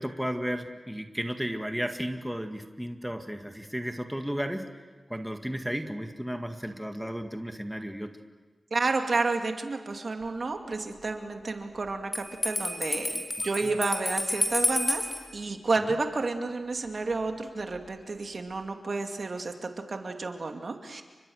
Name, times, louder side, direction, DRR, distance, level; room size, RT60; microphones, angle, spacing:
voice 1, 0.0-4.7 5.1-8.1 13.4-13.8 15.8-15.9, equal, 5° right, 5 dB, 1.9 m, -34 dB
voice 2, 8.7-15.1 15.3-21.0, right 3 dB, 60° right, 4 dB, 2.6 m, -31 dB
Bell, 12.1-15.2, left 1 dB, 30° left, 4.7 m, -30 dB
30.0 x 24.5 x 6.5 m, 1.3 s
cardioid pair, 60°, 0 cm